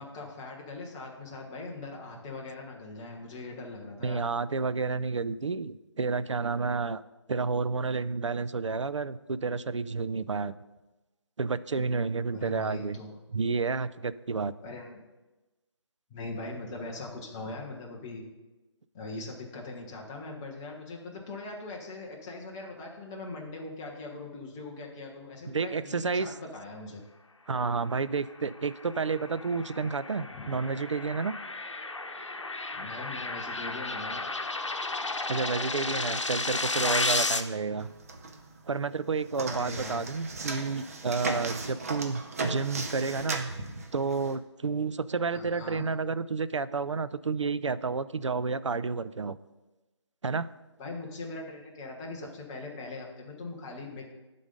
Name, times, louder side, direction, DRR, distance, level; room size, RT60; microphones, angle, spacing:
voice 1, 0.0-4.3 12.3-13.2 14.6-15.0 16.1-18.2 18.9-27.0 30.3-30.6 32.7-34.3 39.5-40.0 45.3-45.9 50.8-54.1, left 3 dB, 5° left, -1 dB, 0.4 m, -41 dB
voice 2, 4.0-7.0 7.3-10.5 11.4-13.0 13.3-14.5 25.5-26.3 27.5-31.3 35.3-37.9 38.7-43.5 43.9-49.4 50.2-50.5, right 4 dB, 80° right, 15 dB, 0.4 m, -30 dB
sound 1, 28.5-37.4, left 3 dB, 80° left, 0.8 m, -33 dB
sound 2, 37.8-38.7 38.9-44.3, right 3 dB, 30° right, 0.7 m, -36 dB
11.0 x 3.8 x 5.2 m, 1.1 s
figure-of-eight pair, 155°, 15 cm